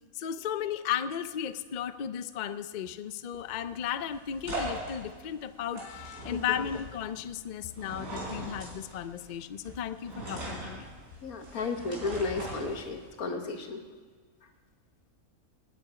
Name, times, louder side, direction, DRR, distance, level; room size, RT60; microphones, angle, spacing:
voice 1, 0.2-10.9 11.5-11.7, left 9 dB, 65° left, 12 dB, 0.4 m, -35 dB
sound 1, 3.3-13.2, right 1 dB, 75° right, 4.6 m, -41 dB
voice 2, 11.2-13.8, left 3 dB, 80° left, 5 dB, 1.7 m, -33 dB
19.0 x 9.4 x 4.8 m, 1.5 s
omnidirectional pair, 1.5 m